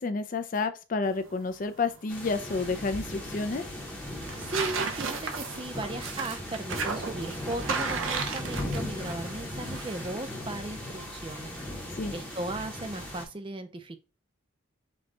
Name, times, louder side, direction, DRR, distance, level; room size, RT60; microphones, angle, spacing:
voice 1, 0.0-3.6 12.0-12.1, left 4 dB, 40° left, 0.4 m, -30 dB
sound 1, 1.0-13.3, right 5 dB, 75° right, 0.7 m, -37 dB
sound 2, 2.1-13.3, left 1 dB, 5° left, 0.8 m, -38 dB
voice 2, 4.4-14.0, right 2 dB, 25° right, 0.4 m, -37 dB
5.3 x 2.3 x 3.8 m
head